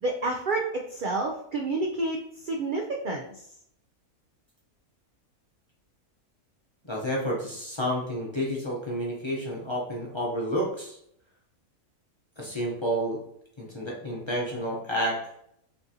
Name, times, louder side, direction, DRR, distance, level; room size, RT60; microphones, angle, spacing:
voice 1, 0.0-3.4, right 2 dB, 80° right, 0 dB, 0.4 m, -29 dB
voice 2, 6.9-11.0 12.4-13.2 13.6-15.2, equal, 25° left, -4 dB, 0.6 m, -30 dB
5.4 x 2.6 x 2.8 m, 0.71 s
omnidirectional pair, 1.5 m